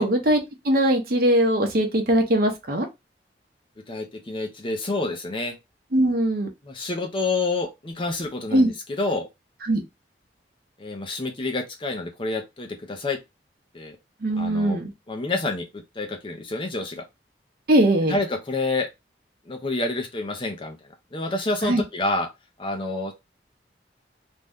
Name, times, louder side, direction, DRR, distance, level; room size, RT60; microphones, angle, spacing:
voice 1, 0.0-2.9 5.9-6.5 8.5-8.7 9.7-9.8 14.2-14.9 17.7-18.2 21.6-21.8, right 1 dB, 55° right, 0.7 m, -21 dB
voice 2, 3.9-5.5 6.6-9.3 10.8-13.2 13.7-14.0 14.4-14.8 15.1-15.6 16.0-17.0 18.1-18.9 19.5-20.8 21.1-22.3 22.6-23.1, left 2 dB, 30° left, 0.6 m, -28 dB
2.6 x 2.2 x 3.4 m
head